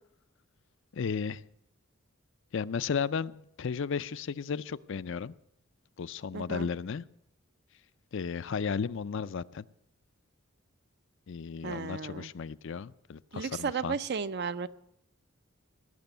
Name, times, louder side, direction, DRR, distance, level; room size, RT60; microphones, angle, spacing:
voice 1, 0.9-1.4 2.5-5.3 6.0-7.0 8.1-9.7 11.3-14.0, left 6 dB, 65° left, 15 dB, 0.4 m, -34 dB
voice 2, 6.3-6.7 11.6-12.3 13.3-14.7, right 5 dB, 55° right, 14 dB, 0.6 m, -34 dB
17.5 x 6.9 x 9.2 m, 0.75 s
head